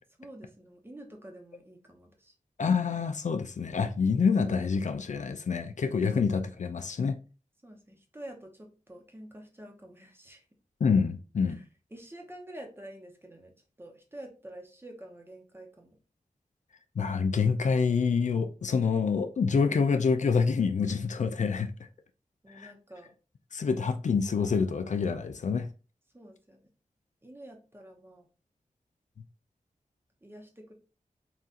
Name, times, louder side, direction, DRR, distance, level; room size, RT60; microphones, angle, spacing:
voice 1, 0.2-2.3 5.9-6.0 7.6-10.4 11.5-11.6 11.9-13.5 13.8-16.0 22.4-23.1 26.1-26.6 27.2-28.2 30.2-30.7, right 1 dB, 15° right, 0.9 m, -48 dB
voice 2, 2.6-7.2 10.8-11.6 17.0-21.7 22.5-22.7 23.5-25.7, left 5 dB, 60° left, 0.4 m, -27 dB
4.2 x 2.5 x 3.6 m
wide cardioid pair, 105°, 14 cm